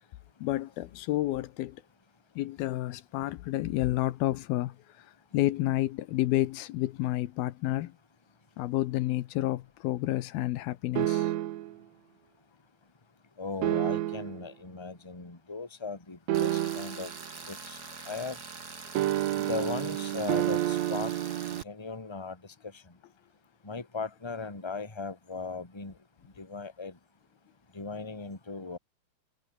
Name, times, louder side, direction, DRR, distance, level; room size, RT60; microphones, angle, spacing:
voice 1, 0.4-1.8 2.4-7.9 8.6-11.3, left 16 dB, 80° left, 2.8 m, -30 dB
sound 1, 11.0-11.7 13.6-14.4 16.3-17.1 19.0-21.6, right 14 dB, 75° right, 1.6 m, -29 dB
voice 2, 13.4-17.1 17.5-18.4 19.1-21.1 21.5-22.8 23.6-25.9 26.4-27.0 27.7-28.8, left 4 dB, 10° left, 2.4 m, -38 dB
Tools, 16.3-21.6, right 4 dB, 30° right, 2.9 m, -44 dB
omnidirectional pair, 4.3 m